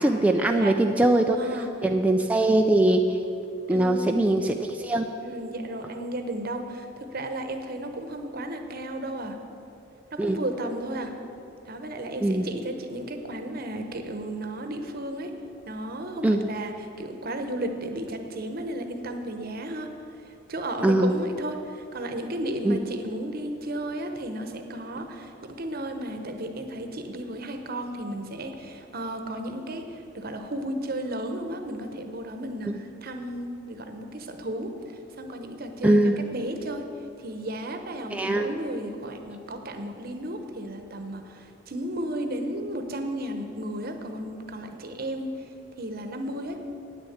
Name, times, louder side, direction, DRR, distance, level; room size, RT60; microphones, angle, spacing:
voice 1, 0.0-1.4 1.8-3.2 3.7-5.1 10.2-10.4 12.2-12.5 16.2-16.4 20.8-21.1 22.6-22.8 35.8-36.2 38.1-38.5, right 1 dB, 10° right, 3 dB, 0.4 m, -21 dB
voice 2, 1.3-1.7 3.7-4.5 5.2-9.4 10.1-11.1 11.6-15.3 15.6-19.9 20.5-34.7 35.2-36.0 36.3-36.9 37.2-45.3 45.8-46.6, right 1 dB, 50° right, 6 dB, 0.9 m, -34 dB
9.2 x 6.6 x 8.7 m, 2.8 s
head